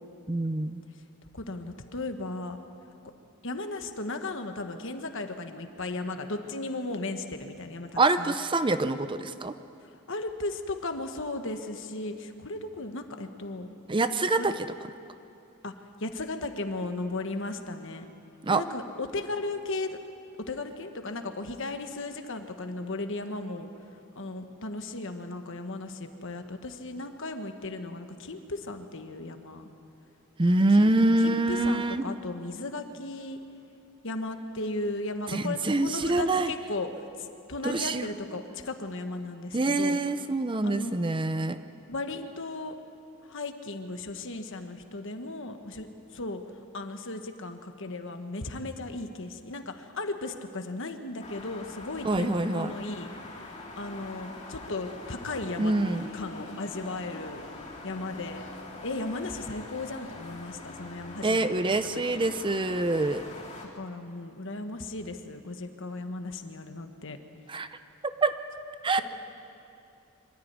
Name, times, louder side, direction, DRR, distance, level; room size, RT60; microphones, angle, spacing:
voice 1, 0.3-0.8 8.0-9.5 13.9-14.5 18.4-18.6 30.4-32.0 35.3-36.5 37.6-38.1 39.5-41.6 52.0-52.7 55.6-56.1 61.2-63.2 67.5-67.7 68.2-68.3 68.8-69.0, right 2 dB, 20° right, 11 dB, 0.6 m, -25 dB
voice 2, 1.3-2.6 3.4-8.3 9.8-13.7 14.4-14.5 15.6-15.7 16.0-18.0 18.5-20.0 20.5-23.7 24.1-29.7 30.7-33.4 34.0-40.0 40.6-41.1 41.9-42.8 43.2-46.4 46.7-53.4 53.8-55.7 56.1-57.4 57.8-58.4 58.8-62.3 63.7-67.2, left 2 dB, 60° left, 7 dB, 1.4 m, -36 dB
sound 1, 51.2-63.7, left 2 dB, 30° left, 3.5 m, -44 dB
25.0 x 13.5 x 9.6 m, 2.7 s
head